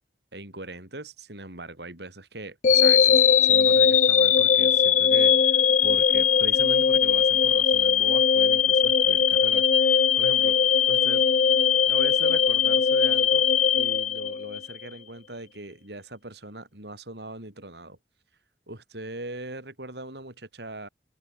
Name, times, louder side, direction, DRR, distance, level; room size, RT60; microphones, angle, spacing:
voice 1, 0.3-10.6 10.9-11.3 11.9-13.5 13.7-18.0 18.7-20.9, right 2 dB, 70° right, 4.9 m, -40 dB
sound 1, 2.6-14.8, left 7 dB, 45° left, 0.4 m, -20 dB
head